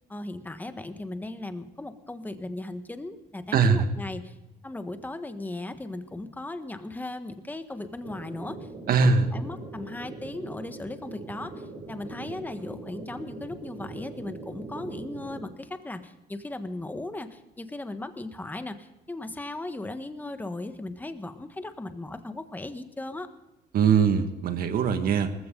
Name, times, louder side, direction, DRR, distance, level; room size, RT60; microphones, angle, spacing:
voice 1, 0.1-4.3 4.6-8.6 9.0-23.3, left 2 dB, 10° left, 9 dB, 1.4 m, -37 dB
voice 2, 3.5-3.9 8.9-9.3 23.7-25.3, right 5 dB, 60° right, 8 dB, 1.7 m, -21 dB
sound 1, 8.0-15.4, right 3 dB, 40° right, 6.6 m, -41 dB
19.5 x 15.0 x 3.9 m, 1.0 s
cardioid pair, 110°, 17 cm